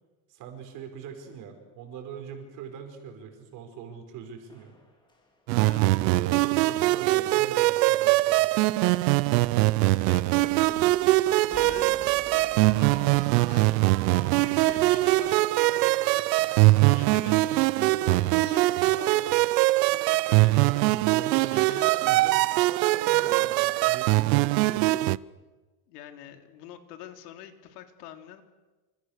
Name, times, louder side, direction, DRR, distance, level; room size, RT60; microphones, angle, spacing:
voice 1, 0.3-4.7 5.8-8.5 13.9-14.5 16.3-16.4 17.0-17.3 21.1-25.0, right 7 dB, 40° right, 4 dB, 5.6 m, -42 dB
sound 1, 4.5-5.4 5.7-6.0 6.3-6.5 6.8-7.0 7.4-7.5 8.0-8.3 8.6-8.7 9.2-10.0 10.4-15.3, left 2 dB, 10° left, 3.9 m, -51 dB
sound 2, 5.5-25.2, right 19 dB, 85° right, 0.9 m, -22 dB
voice 2, 5.6-6.0 10.0-10.8 11.2-11.9 12.3-21.2 21.5-21.9 22.5-22.7 25.9-28.4, left 10 dB, 70° left, 6 dB, 3.7 m, -46 dB
28.0 x 27.5 x 6.8 m, 1.2 s
cardioid pair, 175°, 48 cm